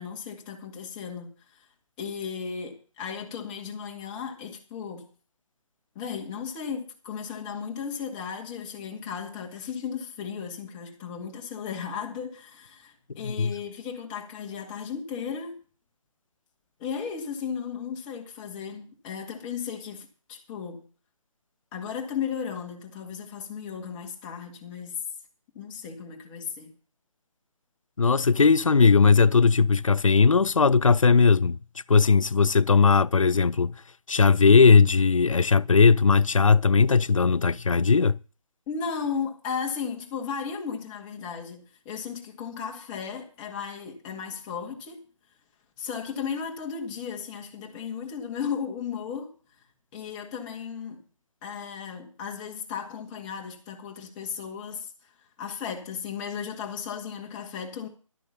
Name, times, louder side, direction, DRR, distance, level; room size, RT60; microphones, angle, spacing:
voice 1, 0.0-1.7 2.0-5.1 6.0-15.6 16.8-20.9 21.7-25.0 25.6-26.7 38.7-45.0 45.8-49.3 49.9-51.0 51.4-54.9 55.4-57.9, left 6 dB, 15° left, 1.9 m, -35 dB
voice 2, 28.0-31.6 31.9-33.7 34.1-38.2, left 5 dB, 70° left, 0.5 m, -18 dB
12.0 x 9.2 x 6.8 m
figure-of-eight pair, 145°, 17 cm